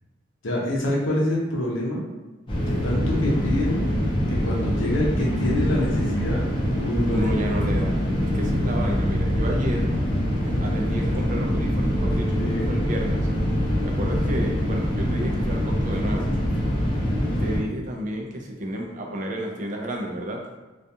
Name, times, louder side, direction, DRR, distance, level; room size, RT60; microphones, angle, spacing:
voice 1, 0.4-2.0 2.7-3.9 4.3-6.5 6.8-7.3 12.4-12.7, left 1 dB, 80° left, -3 dB, 0.7 m, -26 dB
sound 1, 2.5-17.6, equal, 25° left, 0.5 m, -24 dB
voice 2, 7.1-10.0 10.4-13.3 13.8-16.3 17.4-20.5, equal, 40° right, 1 dB, 0.4 m, -31 dB
2.4 x 2.3 x 2.7 m, 1.1 s
head